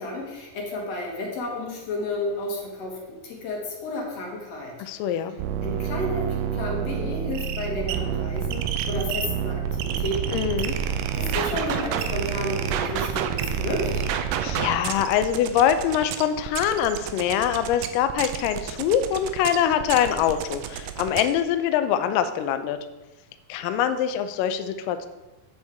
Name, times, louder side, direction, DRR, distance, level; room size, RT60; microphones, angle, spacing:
voice 1, 0.0-4.7 5.6-10.4 11.1-13.9, left 2 dB, 55° left, -1 dB, 2.1 m, -31 dB
voice 2, 4.8-5.4 10.3-10.7 14.4-22.8 23.5-25.1, left 9 dB, 80° left, 9 dB, 2.1 m, -24 dB
sound 1, 5.4-21.4, right 9 dB, 80° right, 2.0 m, -29 dB
8.1 x 8.0 x 3.4 m, 1.1 s
omnidirectional pair, 4.2 m